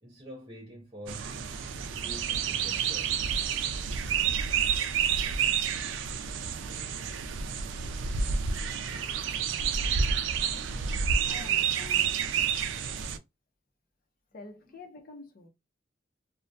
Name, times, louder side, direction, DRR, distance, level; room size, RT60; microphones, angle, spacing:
voice 1, 0.0-1.4 1.8-3.2 10.4-11.4, equal, 25° right, 0.5 m, -47 dB
sound 1, 1.1-13.2, right 7 dB, 80° right, 0.3 m, -29 dB
voice 2, 11.2-12.1 14.3-15.5, left 3 dB, 50° left, 0.6 m, -47 dB
2.3 x 2.1 x 2.6 m
head